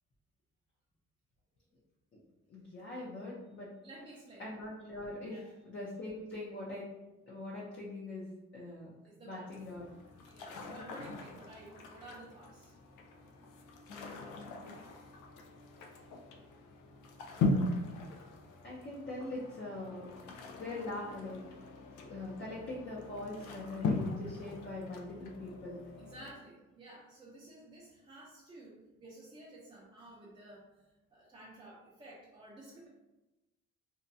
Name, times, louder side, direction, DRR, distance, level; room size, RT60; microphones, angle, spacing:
voice 1, 2.5-3.7 4.4-5.4 5.7-6.8 7.3-8.3 8.5-8.9 9.2-9.9 13.9-14.4 18.6-20.1 20.5-21.4 22.0-25.8, left 2 dB, 40° left, -5 dB, 0.6 m, -42 dB
voice 2, 3.8-4.5 5.3-5.5 9.0-9.5 10.2-12.7 26.0-30.7 31.1-32.9, right 1 dB, 20° right, -6 dB, 0.5 m, -52 dB
sound 1, 9.5-26.3, left 3 dB, 85° left, 0.5 m, -40 dB
2.6 x 2.2 x 2.6 m, 1.0 s
cardioid pair, 90°, 30 cm